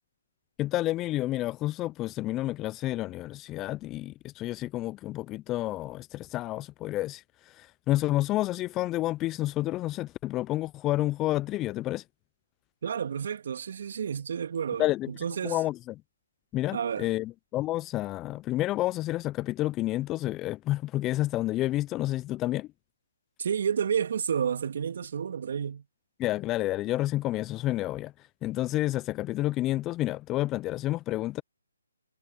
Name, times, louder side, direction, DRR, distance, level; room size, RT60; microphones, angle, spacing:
voice 1, 0.6-7.2 7.6-12.0 14.8-15.1 15.4-15.8 16.5-22.7 26.2-28.1 28.4-31.4, left 16 dB, 20° left, 0.4 m, -29 dB
voice 2, 12.8-15.6 16.7-17.1 23.4-25.8, right 7 dB, 55° right, 2.8 m, -30 dB
figure-of-eight pair, 145°, 0 cm